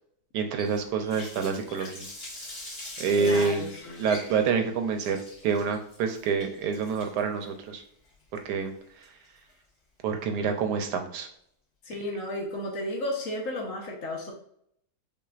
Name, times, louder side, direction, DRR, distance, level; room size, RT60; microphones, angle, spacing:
voice 1, 0.3-2.1 3.0-3.7 4.0-7.8 8.5-8.7 10.0-11.3, right 5 dB, 80° right, 5 dB, 1.2 m, -27 dB
Water tap faucet, 0.6-9.5, left 2 dB, 45° left, 1.7 m, -44 dB
voice 2, 3.1-4.1 11.8-14.3, left 1 dB, 60° left, 0 dB, 1.1 m, -33 dB
5.7 x 2.4 x 2.4 m, 0.69 s
omnidirectional pair, 1.7 m